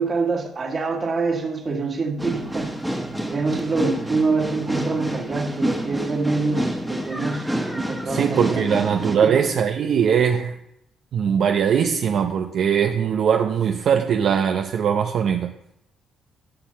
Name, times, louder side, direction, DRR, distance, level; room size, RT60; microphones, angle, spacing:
voice 1, 0.0-2.7 3.2-7.5 7.7-8.7 9.2-9.4, right 4 dB, 40° right, 1.7 m, -25 dB
sound 1, 2.2-9.2, right 1 dB, 5° right, 1.3 m, -28 dB
voice 2, 8.1-10.5 11.1-15.5, right 7 dB, 65° right, 0.6 m, -21 dB
11.5 x 4.5 x 6.8 m
cardioid pair, 90°, 0 cm